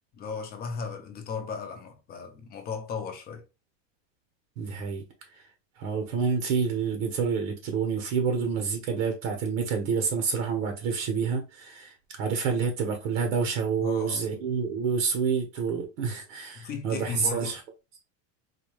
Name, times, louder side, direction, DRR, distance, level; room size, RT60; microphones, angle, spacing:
voice 1, 0.1-3.4 13.8-14.3 16.6-17.5, left 5 dB, 25° left, 0.6 m, -36 dB
voice 2, 4.6-5.0 5.8-17.6, right 5 dB, 80° right, 1.1 m, -28 dB
4.1 x 2.3 x 3.1 m
supercardioid pair, 160°, 39 cm